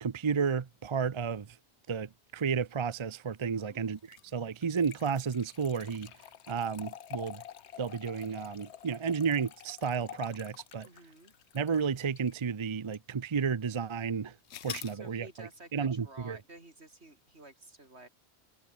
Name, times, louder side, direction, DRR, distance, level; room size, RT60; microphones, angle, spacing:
voice 1, 0.0-1.6 1.9-6.1 6.5-7.4 7.8-10.9 11.5-14.3 14.6-16.4, right 6 dB, 35° right, 0.5 m, -32 dB
voice 2, 3.6-4.0 10.8-11.3 14.9-18.1, right 2 dB, 70° right, 5.0 m, -52 dB
sound 1, 4.0-12.4 12.9-13.0 14.5-15.0, left 9 dB, 75° left, 1.1 m, -47 dB
omnidirectional pair, 1.1 m